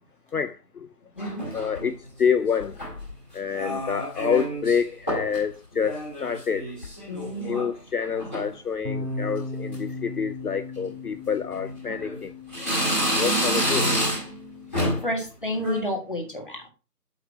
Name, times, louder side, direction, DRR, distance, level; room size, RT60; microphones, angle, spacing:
voice 1, 0.3-0.9 1.5-2.8 3.3-6.7 7.3-12.3 12.9-13.9, left 6 dB, 70° left, 0.6 m, -27 dB
voice 2, 1.2-1.5 7.1-7.6 15.0-16.6, left 1 dB, 30° left, 1.6 m, -30 dB
sound 1, 1.2-1.9 2.6-3.1 3.5-4.8 5.1-5.4 5.7-7.7 8.0-8.5 9.0-9.4 9.7-9.8 10.7-10.9 11.5-12.2 12.5-14.4 14.7-15.1 15.5-15.8, equal, 10° left, 2.2 m, -28 dB
sound 2, 8.8-15.1, left 3 dB, 75° right, 3.4 m, -37 dB
8.3 x 3.6 x 6.3 m
figure-of-eight pair, 175°, 47 cm